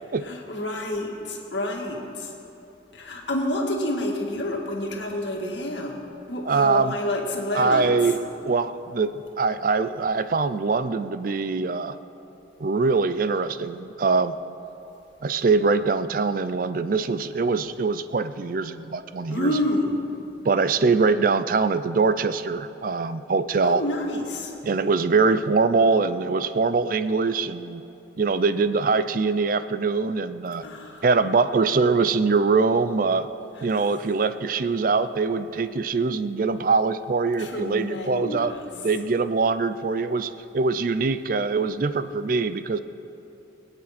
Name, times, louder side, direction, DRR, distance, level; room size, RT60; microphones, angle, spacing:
voice 1, 0.2-2.3 2.9-5.9 6.3-7.9 19.3-20.0 23.6-24.5 30.6-31.0 37.4-38.6, left 1 dB, 75° left, 0 dB, 1.9 m, -28 dB
voice 2, 6.4-6.9 7.5-8.2 8.4-12.0 12.6-14.4 15.2-19.6 20.4-23.8 24.6-27.8 28.2-30.6 31.0-33.3 33.6-38.5 38.8-42.8, right 4 dB, 45° right, 12 dB, 0.4 m, -23 dB
22.5 x 8.8 x 4.2 m, 3.0 s
head